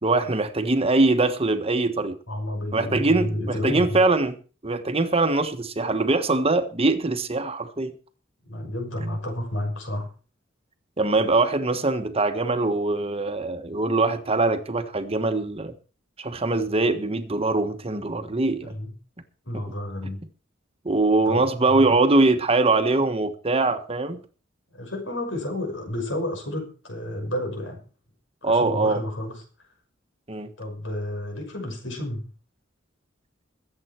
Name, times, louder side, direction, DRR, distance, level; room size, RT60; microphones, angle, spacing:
voice 1, 0.0-2.2 2.7-4.4 4.6-7.9 11.0-15.7 16.2-18.7 19.5-19.6 20.8-24.2 28.4-29.0 30.3-30.5, right 3 dB, 30° right, 1.3 m, -22 dB
voice 2, 2.3-4.0 8.5-10.1 18.6-18.9 19.5-20.2 21.3-22.0 24.7-27.8 28.4-29.4 30.6-32.3, left 1 dB, 80° left, 5.8 m, -31 dB
22.0 x 8.0 x 4.5 m
head